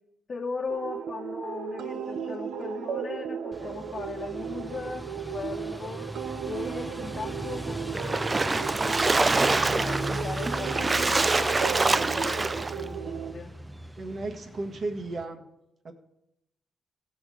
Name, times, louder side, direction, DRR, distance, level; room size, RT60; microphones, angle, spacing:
voice 1, 0.3-6.1 6.4-12.4 12.8-13.5, left 4 dB, 45° left, 0 dB, 1.1 m, -38 dB
sound 1, 0.7-13.3, right 7 dB, 80° right, 0.7 m, -35 dB
sound 2, 3.5-15.2, right 1 dB, 10° right, 0.7 m, -38 dB
Splash splatter, 7.9-12.8, right 3 dB, 25° right, 0.3 m, -25 dB
voice 2, 14.0-15.4 15.8-15.9, right 2 dB, 50° right, 4 dB, 1.5 m, -34 dB
15.5 x 6.4 x 4.8 m, 0.85 s
cardioid pair, 80°, 0 cm